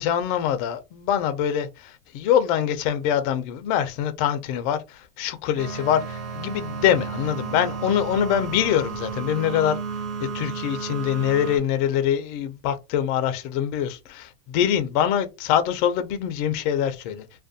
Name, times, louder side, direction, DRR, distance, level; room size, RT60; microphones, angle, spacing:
voice 1, 0.0-9.8 10.2-17.2, left 9 dB, 40° left, 0.4 m, -24 dB
sound 1, 5.6-11.6, right 5 dB, 80° right, 1.1 m, -33 dB
2.4 x 2.1 x 2.5 m
hypercardioid pair, 125°, 43 cm